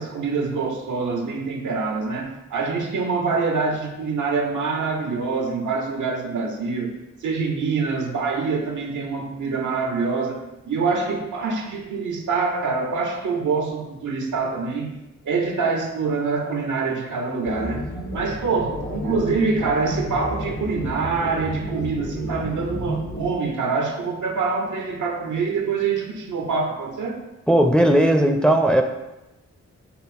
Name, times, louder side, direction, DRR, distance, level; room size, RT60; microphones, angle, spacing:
voice 1, 0.0-7.0 7.2-14.9 15.2-17.8 18.1-27.2, right 4 dB, 90° right, 3 dB, 0.7 m, -25 dB
sound 1, 17.4-23.3, equal, 80° left, 1.3 m, -31 dB
voice 2, 27.5-28.8, right 1 dB, 5° left, 5 dB, 0.4 m, -17 dB
5.5 x 2.0 x 4.1 m, 0.97 s
cardioid pair, 55°, 29 cm